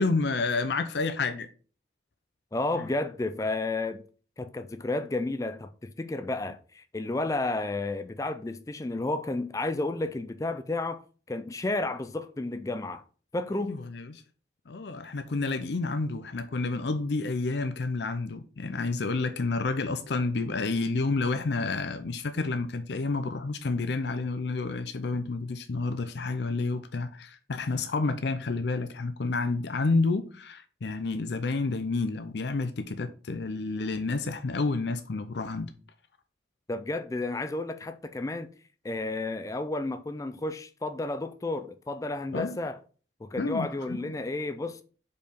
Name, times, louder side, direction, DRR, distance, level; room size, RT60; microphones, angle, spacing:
voice 1, 0.0-1.5 2.7-2.9 13.7-14.2 14.7-35.7 42.3-42.6 43.4-44.0, left 3 dB, 70° left, 0.6 m, -30 dB
voice 2, 2.5-4.0 4.4-11.0 11.3-13.0 13.3-13.8 36.7-38.5 38.8-42.8 43.2-44.8, left 2 dB, 20° left, 0.3 m, -32 dB
5.1 x 4.6 x 5.1 m
head